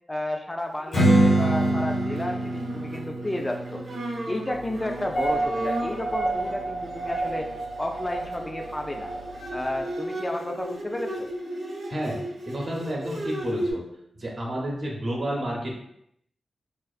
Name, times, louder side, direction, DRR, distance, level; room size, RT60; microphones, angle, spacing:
voice 1, 0.1-3.8 4.3-7.5 7.8-9.1 9.5-11.3, left 1 dB, 25° left, 3 dB, 0.3 m, -32 dB
Bowed string instrument, 0.8-13.7, right 1 dB, 90° right, 0.5 m, -36 dB
Strum, 0.9-6.1, right 1 dB, 80° left, 1.0 m, -25 dB
sound 1, 4.9-9.8, right 2 dB, 65° left, 0.6 m, -31 dB
voice 2, 12.5-13.8 14.2-15.7, right 1 dB, 60° right, -2 dB, 0.7 m, -30 dB
2.5 x 2.3 x 2.3 m, 0.74 s
cardioid pair, 40°, 0 cm